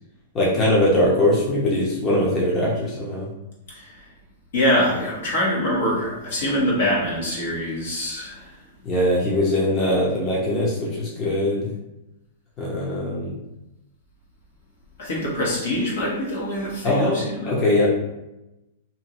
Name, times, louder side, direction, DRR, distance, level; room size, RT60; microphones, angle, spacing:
voice 1, 0.3-3.3 8.8-11.7 12.6-13.3 16.8-17.9, left 1 dB, 25° left, -5 dB, 0.8 m, -21 dB
voice 2, 4.5-8.3 15.0-17.6, equal, 70° left, -4 dB, 1.2 m, -24 dB
2.8 x 2.6 x 2.9 m, 0.94 s
hypercardioid pair, 120°, 0 cm